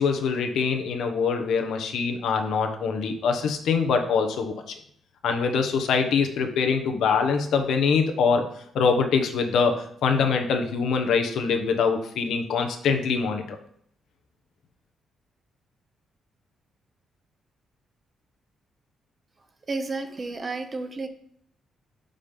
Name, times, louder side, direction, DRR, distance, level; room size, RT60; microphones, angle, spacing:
voice 1, 0.0-4.7 5.2-8.4 8.7-13.4, left 5 dB, 80° left, 5 dB, 1.0 m, -24 dB
voice 2, 19.7-21.1, right 3 dB, 30° right, 8 dB, 0.8 m, -31 dB
5.3 x 5.1 x 5.7 m, 0.65 s
cardioid pair, 115°, 0 cm